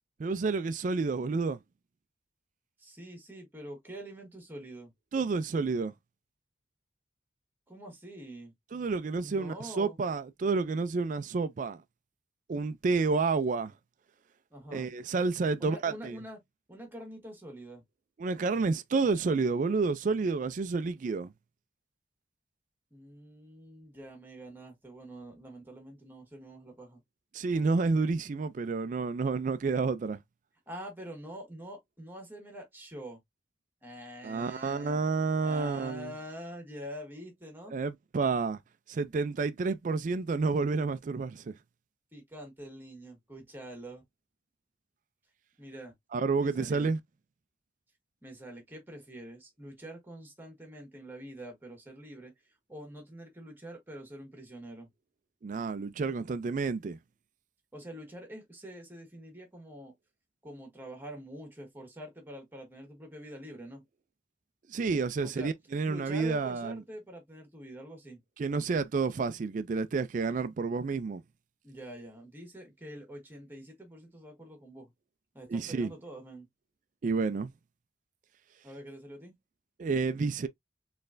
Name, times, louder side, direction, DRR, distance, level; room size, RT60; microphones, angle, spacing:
voice 1, 0.2-1.6 5.1-5.9 8.7-11.8 12.5-13.7 14.7-16.2 18.2-21.3 27.3-30.2 34.2-36.1 37.7-38.6 38.9-41.5 46.1-47.0 55.4-57.0 64.7-66.8 68.4-71.2 75.5-75.9 77.0-77.5 79.8-80.5, right 4 dB, 40° right, 0.3 m, -30 dB
voice 2, 2.8-4.9 7.7-8.5 9.2-10.0 14.5-14.9 15.6-16.4 16.7-17.8 22.9-27.0 30.7-33.2 33.8-35.0 35.4-37.7 42.1-44.0 45.6-45.9 46.4-46.9 48.2-52.3 52.7-54.9 57.7-59.9 60.4-63.8 65.2-65.5 65.8-68.2 71.6-74.9 75.3-76.5 78.6-79.3, right 1 dB, 10° right, 1.5 m, -45 dB
4.3 x 3.2 x 2.5 m
head